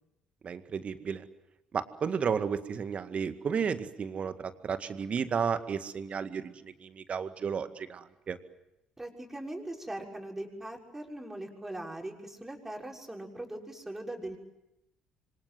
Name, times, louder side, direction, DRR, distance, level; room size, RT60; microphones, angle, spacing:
voice 1, 0.4-1.2 1.7-8.4, right 6 dB, 45° right, 10 dB, 2.0 m, -33 dB
voice 2, 9.0-14.4, right 1 dB, 10° right, 1 dB, 6.3 m, -40 dB
26.5 x 25.5 x 7.7 m, 0.88 s
hypercardioid pair, 50°, 3 cm